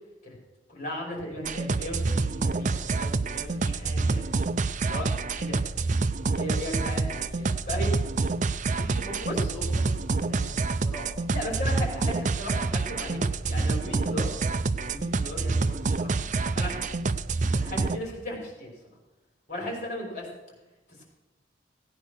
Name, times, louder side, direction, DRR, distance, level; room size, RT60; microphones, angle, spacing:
voice 1, 0.7-4.2 4.8-5.1 5.4-5.6 6.3-8.1 9.2-9.5 11.3-13.2 13.5-14.3 14.8-16.2 16.6-17.0 17.5-18.7 19.5-20.3 20.9-21.0, equal, 40° left, -1 dB, 5.3 m, -36 dB
sound 1, 1.4-18.0, right 3 dB, 40° right, 0.5 m, -27 dB
voice 2, 8.8-11.2, equal, 10° left, -8 dB, 3.6 m, -42 dB
17.0 x 9.3 x 6.5 m, 1.0 s
head